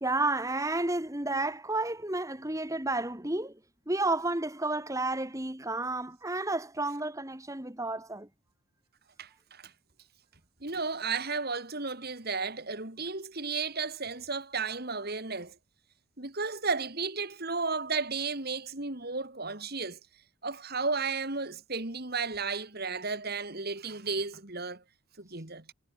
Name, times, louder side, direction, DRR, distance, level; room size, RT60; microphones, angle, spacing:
voice 1, 0.0-3.5 3.9-8.3, right 2 dB, 15° right, 1.6 m, -31 dB
voice 2, 9.2-9.7 10.6-15.6 16.2-20.0 20.4-24.8 25.2-25.7, right 4 dB, 45° right, 2.4 m, -33 dB
head